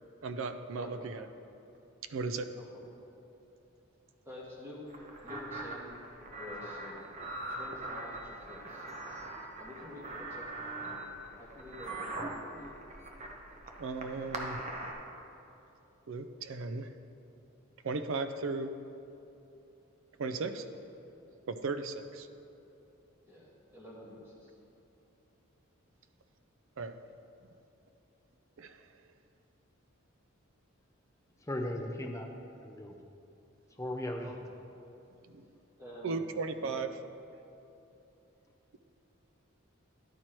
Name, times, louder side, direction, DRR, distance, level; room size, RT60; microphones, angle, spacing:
voice 1, 0.2-1.2 2.1-2.5 13.8-14.6 16.1-16.9 17.8-18.7 20.2-20.6 21.5-22.3 26.8-26.9 28.6-28.8 35.3-35.4 36.0-37.0, right 3 dB, 70° right, 9 dB, 0.4 m, -36 dB
voice 2, 0.8-1.1 2.5-2.8 4.2-4.8 5.2-6.0 6.4-9.2 9.6-10.4 10.7-11.0 11.4-12.7 14.1-14.3 20.4-20.5 23.3-24.5 34.2-34.3 35.8-36.2 36.6-36.7, left 1 dB, 10° right, -6 dB, 1.4 m, -49 dB
sound 1, 4.9-14.9, right 2 dB, 35° right, 0.7 m, -42 dB
voice 3, 31.4-32.3 32.5-32.9 33.8-34.4, left 1 dB, 15° left, 3 dB, 0.5 m, -37 dB
11.0 x 4.5 x 4.4 m, 2.9 s
head